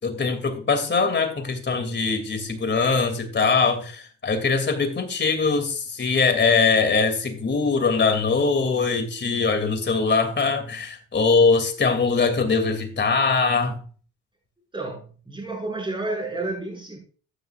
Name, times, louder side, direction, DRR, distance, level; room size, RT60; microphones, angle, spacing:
voice 1, 0.0-13.8, left 4 dB, 35° left, 2.8 m, -22 dB
voice 2, 14.7-17.0, right 2 dB, 15° right, 6.6 m, -30 dB
14.5 x 9.7 x 2.5 m
cardioid pair, 90°, 30 cm